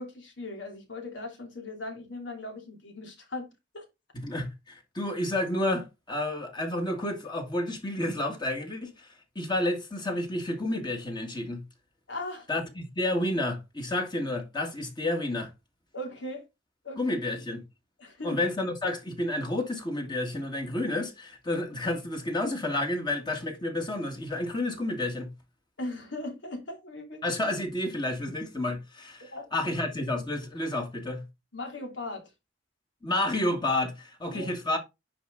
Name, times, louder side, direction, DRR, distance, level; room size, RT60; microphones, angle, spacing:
voice 1, 0.0-3.5 3.7-3.8 12.1-12.5 15.9-16.5 16.8-17.2 18.0-18.4 25.8-27.2 29.3-29.5 31.5-32.3 34.3-34.5, left 2 dB, 80° left, 3.0 m, -38 dB
voice 2, 4.1-9.1 9.4-11.6 12.5-15.5 17.0-17.6 18.2-25.3 27.2-31.2 33.0-34.8, left 1 dB, 25° left, 1.9 m, -30 dB
9.9 x 4.5 x 3.8 m
head